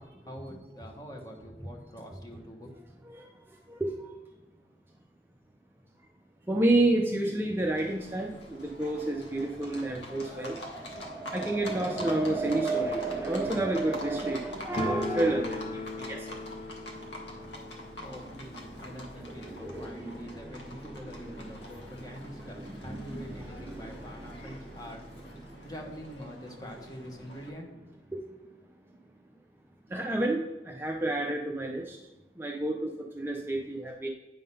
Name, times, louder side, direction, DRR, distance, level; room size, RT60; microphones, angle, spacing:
voice 1, 0.0-2.7 18.0-27.7, equal, 20° left, 2 dB, 1.0 m, -45 dB
voice 2, 3.7-4.1 6.5-16.4 17.4-17.5 18.8-20.9 21.3-21.9 22.4-24.5 25.4-25.5 28.1-28.2 29.9-32.0 32.4-34.1, right 2 dB, 10° right, 0 dB, 0.5 m, -31 dB
Livestock farm animals working animals, 7.6-27.5, left 1 dB, 80° left, 1.4 m, -45 dB
sound 1, 14.8-21.5 21.7-21.8 22.1-22.2 22.9-23.0 23.3-24.5, left 3 dB, 35° left, 0.5 m, -40 dB
9.2 x 3.8 x 5.4 m, 1.1 s
head